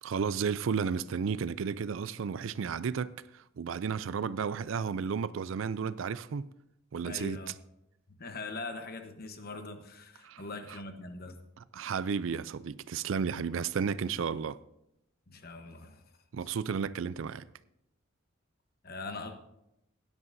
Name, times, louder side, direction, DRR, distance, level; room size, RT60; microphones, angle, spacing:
voice 1, 0.0-6.5 6.9-7.4 10.2-10.4 11.7-14.6 16.3-17.5, right 6 dB, 65° right, 0.4 m, -33 dB
voice 2, 7.0-7.5 8.2-11.4 15.3-16.0 18.8-19.4, left 3 dB, 45° left, 1.1 m, -42 dB
16.5 x 10.5 x 2.7 m
head